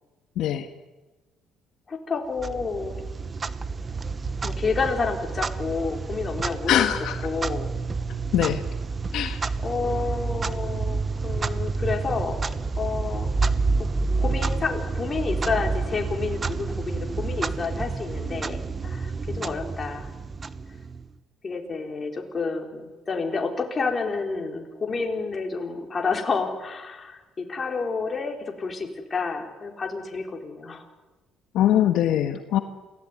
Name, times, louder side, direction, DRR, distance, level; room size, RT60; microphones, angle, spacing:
voice 1, 1.9-3.0 4.4-6.9 7.2-7.7 9.6-12.4 12.8-13.3 13.8-13.9 14.2-20.1 21.4-30.8, left 4 dB, 25° left, 2 dB, 4.4 m, -29 dB
Clock, 2.4-21.1, right 4 dB, 25° right, 1.1 m, -29 dB
voice 2, 6.7-7.2 8.3-8.6 9.1-9.4 31.5-32.6, left 11 dB, 70° left, 7 dB, 1.6 m, -22 dB
28.0 x 17.5 x 9.8 m, 1.2 s
cardioid pair, 130°, 0 cm